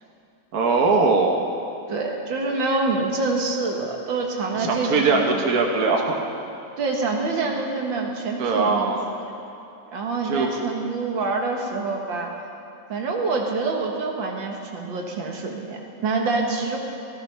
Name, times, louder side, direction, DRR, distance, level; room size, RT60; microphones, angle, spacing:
voice 1, 0.5-1.4 4.5-6.2 8.4-9.1 10.2-10.5, right 4 dB, 50° right, 1 dB, 1.7 m, -21 dB
voice 2, 1.9-5.4 6.8-8.9 9.2-9.3 9.9-12.3 12.9-16.8, right 3 dB, 75° right, 1 dB, 2.2 m, -26 dB
15.0 x 14.5 x 5.7 m, 2.7 s
omnidirectional pair, 2.1 m